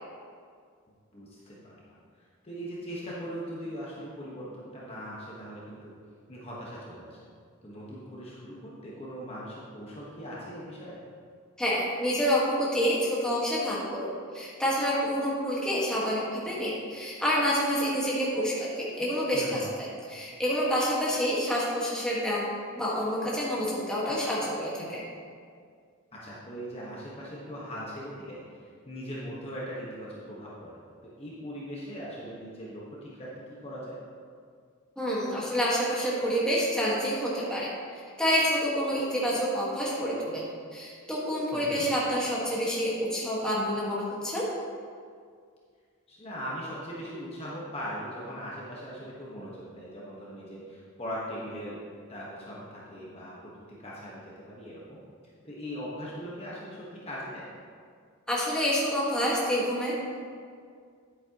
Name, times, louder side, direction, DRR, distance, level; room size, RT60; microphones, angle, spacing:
voice 1, 1.1-2.0 2.4-5.9 6.3-7.3 7.6-11.0 19.3-19.7 26.1-34.0 41.5-41.8 46.1-51.8 52.1-55.0 55.4-57.5, equal, 25° left, -6 dB, 1.3 m, -40 dB
voice 2, 11.6-19.6 20.1-22.5 22.8-25.0 35.0-40.4 40.7-44.4 58.3-60.0, equal, 5° left, -7 dB, 1.6 m, -28 dB
10.0 x 8.6 x 3.0 m, 2.1 s
head